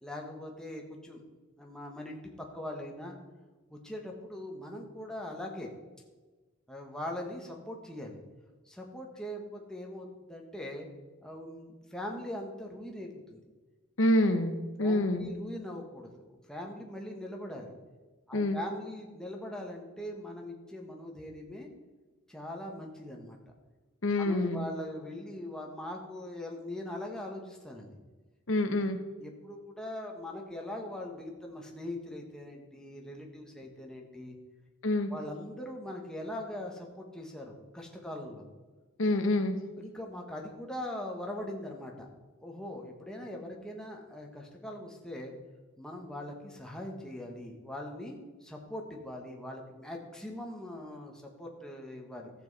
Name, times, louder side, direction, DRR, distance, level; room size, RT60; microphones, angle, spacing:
voice 1, 0.0-1.2 1.6-3.2 3.7-5.7 6.7-8.2 8.7-10.9 11.2-13.4 14.8-17.7 18.3-21.7 22.3-23.4 24.2-28.0 29.2-34.4 35.1-38.5 39.8-42.1 42.4-45.3 45.8-52.3, left 1 dB, 5° left, 0 dB, 1.3 m, -41 dB
voice 2, 14.0-15.3 18.3-18.6 24.0-24.7 28.5-29.0 34.8-35.1 39.0-39.6, left 1 dB, 70° left, 7 dB, 1.0 m, -27 dB
14.0 x 7.3 x 4.1 m, 1.3 s
head